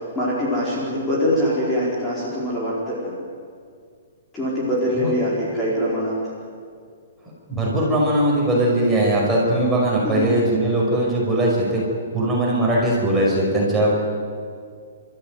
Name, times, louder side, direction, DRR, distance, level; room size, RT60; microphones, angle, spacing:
voice 1, 0.0-3.1 4.3-6.2 10.0-10.3, equal, 10° left, -7 dB, 4.7 m, -23 dB
voice 2, 7.5-11.8 12.1-14.0, right 1 dB, 5° right, -5 dB, 5.6 m, -20 dB
29.0 x 14.5 x 9.4 m, 2.1 s
hypercardioid pair, 165°, 0 cm